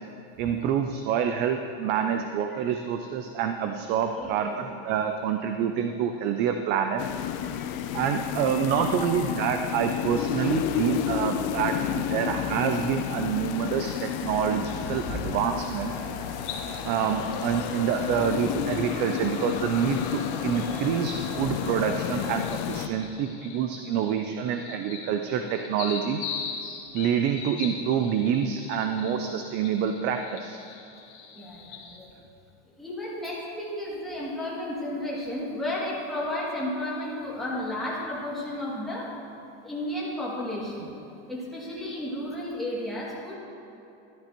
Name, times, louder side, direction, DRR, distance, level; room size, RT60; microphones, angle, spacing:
voice 1, 0.4-7.0 7.9-15.9 16.8-26.2 26.9-30.6, right 8 dB, 35° right, 6 dB, 0.4 m, -27 dB
voice 2, 4.0-4.7 7.4-8.0 9.0-9.1 11.9-12.0 14.8-15.2 17.0-17.2 31.3-32.1 32.8-39.1 39.6-40.9 41.3-43.3, left 1 dB, ahead, -8 dB, 2.3 m, -33 dB
sound 1, 7.0-22.9, left 10 dB, 45° left, 0.5 m, -31 dB
sound 2, 15.8-22.3, right 1 dB, 15° right, 1.0 m, -43 dB
sound 3, 16.4-32.0, left 6 dB, 70° left, 1.6 m, -42 dB
13.0 x 12.0 x 3.0 m, 2.8 s
supercardioid pair, 155°, 33 cm